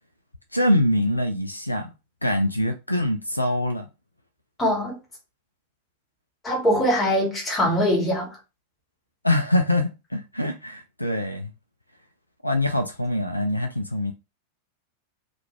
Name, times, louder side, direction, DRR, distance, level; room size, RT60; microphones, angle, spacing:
voice 1, 0.5-1.9 2.2-3.9 9.2-11.5 12.4-14.1, left 1 dB, 85° left, 0.3 m, -24 dB
voice 2, 4.6-5.0 6.4-8.4, equal, 20° left, 1.2 m, -22 dB
2.4 x 2.2 x 3.0 m
figure-of-eight pair, 90°, 0 cm